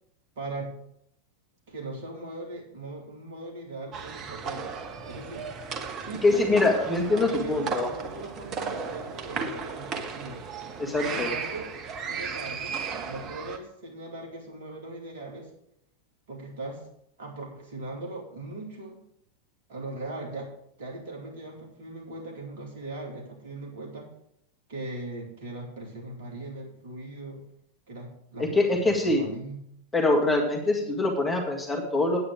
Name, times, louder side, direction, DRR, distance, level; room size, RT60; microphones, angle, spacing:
voice 1, 0.4-0.7 1.7-4.7 5.0-5.5 6.0-6.5 7.1-10.4 11.0-11.7 12.0-15.5 16.3-16.9 17.2-19.0 19.7-20.5 20.8-24.1 24.7-27.4 27.9-29.6, right 2 dB, 55° right, 0 dB, 2.8 m, -39 dB
sound 1, 3.9-13.6, right 5 dB, 30° right, 1.2 m, -35 dB
voice 2, 6.2-7.9 10.8-11.3 28.4-29.2 29.9-32.2, left 2 dB, 10° left, 0 dB, 1.9 m, -24 dB
9.2 x 8.7 x 5.0 m, 0.73 s
figure-of-eight pair, 90°, 0 cm